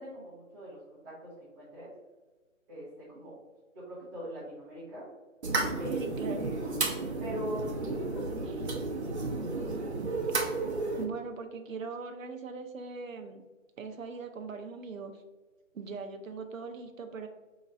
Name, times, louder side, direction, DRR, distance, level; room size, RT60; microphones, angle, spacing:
voice 1, 0.0-1.9 2.7-3.4 3.7-5.0 5.8-6.1 6.3-6.6 7.2-8.5 15.9-16.0, equal, 15° right, -12 dB, 0.8 m, -41 dB
sound 1, 5.4-11.0, right 3 dB, 55° right, 0.9 m, -32 dB
voice 2, 5.9-6.6 11.0-13.4 13.8-15.2 15.7-17.3, right 5 dB, 80° right, 5 dB, 0.7 m, -40 dB
5.1 x 3.0 x 2.5 m, 1.2 s
hypercardioid pair, 160°, 40 cm